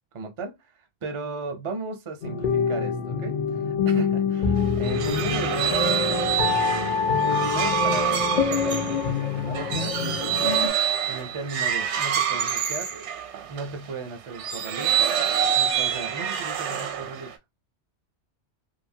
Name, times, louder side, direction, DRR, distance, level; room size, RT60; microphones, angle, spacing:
voice 1, 0.1-0.6 1.0-6.3 7.1-10.5 11.1-12.9 13.5-15.2 15.6-17.3, right 3 dB, 40° right, 0.4 m, -36 dB
sound 1, 2.2-10.7, left 6 dB, 55° left, 0.6 m, -25 dB
sound 2, 4.6-13.7 14.3-17.3, right 8 dB, 80° right, 0.9 m, -26 dB
2.7 x 2.4 x 2.6 m
omnidirectional pair, 1.2 m